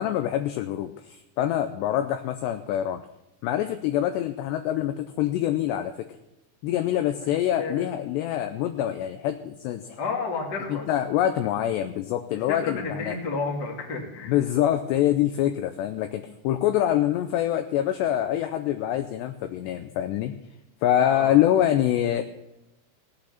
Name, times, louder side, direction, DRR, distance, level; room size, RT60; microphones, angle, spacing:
voice 1, 0.0-3.0 3.4-6.1 6.6-10.0 10.7-13.2 14.3-20.3 20.8-22.2, left 11 dB, 80° left, 8 dB, 2.5 m, -25 dB
voice 2, 7.6-7.9 10.0-10.8 12.5-14.4 21.1-21.3, left 4 dB, 35° left, -1 dB, 1.8 m, -31 dB
17.0 x 8.6 x 5.8 m, 0.93 s
omnidirectional pair, 5.5 m